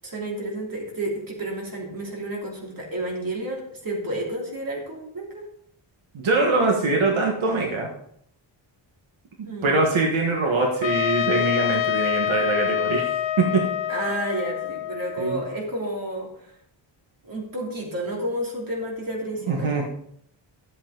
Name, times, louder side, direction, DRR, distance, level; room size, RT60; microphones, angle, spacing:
voice 1, 0.0-5.4 9.4-9.7 13.9-16.5 17.2-19.7, right 1 dB, 45° right, -2 dB, 3.0 m, -31 dB
voice 2, 6.1-7.9 9.4-13.1 13.4-13.6 15.2-15.4 19.5-19.9, right 3 dB, 80° right, 0 dB, 1.7 m, -23 dB
Trumpet, 10.8-15.6, left 12 dB, 70° left, 1.0 m, -26 dB
12.0 x 7.9 x 3.9 m, 0.69 s
wide cardioid pair, 175°, 47 cm